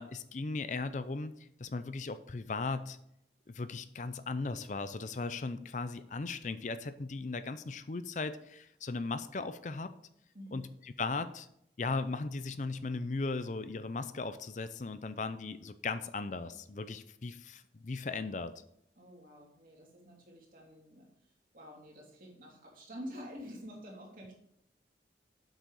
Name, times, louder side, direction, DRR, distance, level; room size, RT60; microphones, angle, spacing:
voice 1, 0.0-1.3 1.6-3.0 3.5-9.9 10.5-10.7 11.0-11.5 11.8-18.5, left 3 dB, 45° left, 12 dB, 0.5 m, -37 dB
voice 2, 19.0-24.3, equal, 50° right, -2 dB, 3.0 m, -48 dB
8.0 x 6.5 x 4.8 m, 0.75 s
head